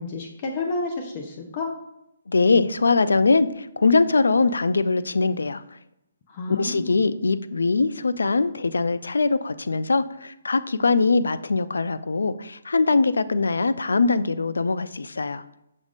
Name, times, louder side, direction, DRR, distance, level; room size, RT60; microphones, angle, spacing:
voice 1, 0.0-1.7 6.3-7.0, left 3 dB, 35° left, 3 dB, 0.7 m, -30 dB
voice 2, 2.3-5.6 6.5-15.4, left 3 dB, 85° left, 14 dB, 0.3 m, -22 dB
6.1 x 2.4 x 3.6 m, 0.82 s
hypercardioid pair, 150°, 0 cm